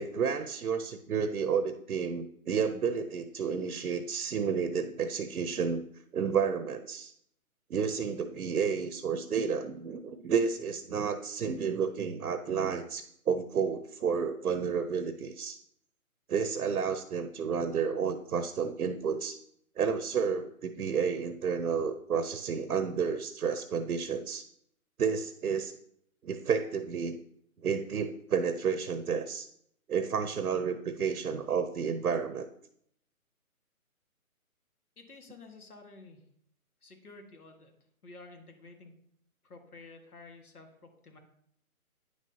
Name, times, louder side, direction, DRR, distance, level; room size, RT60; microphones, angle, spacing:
voice 1, 0.0-5.8 6.1-7.1 7.7-15.6 16.3-19.4 19.8-24.5 25.0-25.8 26.2-27.2 27.6-29.5 29.9-32.5, right 6 dB, 85° right, 10 dB, 0.8 m, -31 dB
voice 2, 35.0-36.3 36.8-37.7 38.0-38.9 39.4-41.2, left 3 dB, 85° left, 4 dB, 1.9 m, -51 dB
9.6 x 6.3 x 2.8 m, 0.70 s
hypercardioid pair, 160°, 43 cm